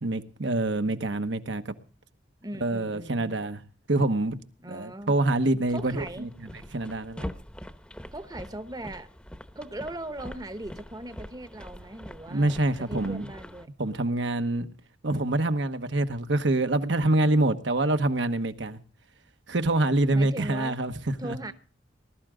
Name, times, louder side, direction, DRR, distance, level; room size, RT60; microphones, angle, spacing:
voice 1, 0.0-1.7 2.6-3.6 3.9-4.4 4.7-7.3 12.3-13.2 13.8-14.7 15.0-18.8 19.5-21.4, right 2 dB, 75° right, 1.2 m, -26 dB
voice 2, 2.4-3.4 4.6-5.1 5.7-6.3 8.1-9.1 9.5-12.6 12.9-13.7 20.1-20.8 21.2-21.5, right 1 dB, 20° right, 0.9 m, -39 dB
sound 1, 5.7-13.7, equal, 5° left, 0.9 m, -43 dB
20.0 x 12.5 x 3.8 m
head